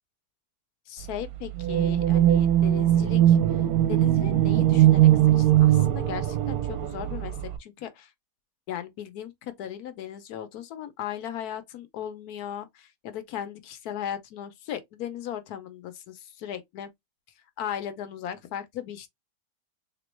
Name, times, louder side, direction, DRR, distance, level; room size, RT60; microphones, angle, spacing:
voice 1, 0.9-3.6 3.9-5.1 5.4-8.1 8.7-16.9 17.6-19.1, left 10 dB, 70° left, 1.1 m, -37 dB
sound 1, 1.6-7.6, right 12 dB, 70° right, 1.0 m, -20 dB
3.6 x 3.0 x 3.1 m
omnidirectional pair, 1.8 m